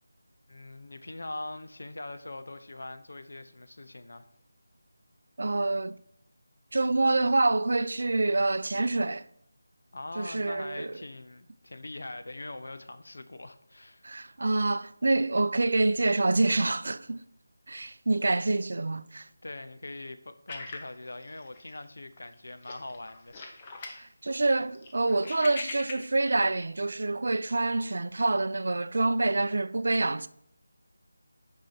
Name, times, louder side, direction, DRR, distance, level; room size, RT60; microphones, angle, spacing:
voice 1, 0.5-4.3 9.9-14.0 19.4-23.4, left 2 dB, 65° left, 0.7 m, -42 dB
voice 2, 5.4-6.0 6.7-9.3 10.2-10.9 14.0-17.2 17.7-19.3 24.0-30.3, right 2 dB, 60° right, 0.4 m, -26 dB
sound 1, 20.5-21.8 22.2-22.3 22.6-24.0 24.4-26.4, left 3 dB, 25° left, 0.9 m, -41 dB
6.3 x 5.5 x 4.2 m
figure-of-eight pair, 160°, 0 cm